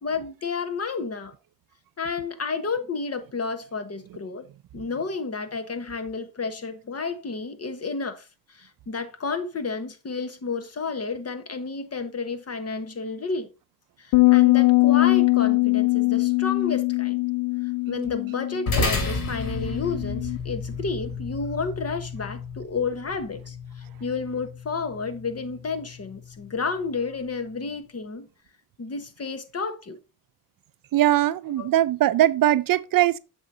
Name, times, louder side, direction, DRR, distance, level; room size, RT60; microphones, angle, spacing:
voice 1, 0.0-1.3 2.0-4.5 4.7-13.5 14.0-17.2 17.9-28.3 28.8-30.0 31.6-31.7, left 4 dB, 40° left, 1.2 m, -31 dB
sound 1, 14.1-20.4, left 26 dB, 90° left, 0.5 m, -21 dB
sound 2, 18.7-27.3, left 3 dB, 70° left, 3.0 m, -32 dB
voice 2, 30.9-33.2, right 13 dB, 65° right, 0.5 m, -20 dB
7.9 x 6.4 x 2.7 m
cardioid pair, 85°, 37 cm